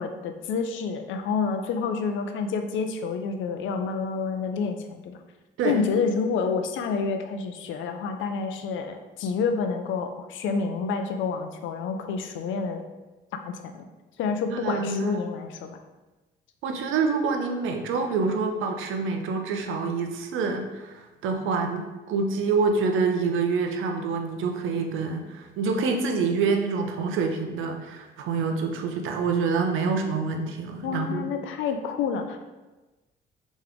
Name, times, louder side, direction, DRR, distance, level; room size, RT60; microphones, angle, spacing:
voice 1, 0.0-5.2 5.6-12.8 13.4-13.8 14.2-15.8 30.8-32.4, left 5 dB, 75° left, 6 dB, 0.5 m, -28 dB
voice 2, 14.5-15.2 16.6-31.3, right 4 dB, 85° right, 4 dB, 0.6 m, -26 dB
3.7 x 3.0 x 3.4 m, 1.1 s
cardioid pair, 90°, 20 cm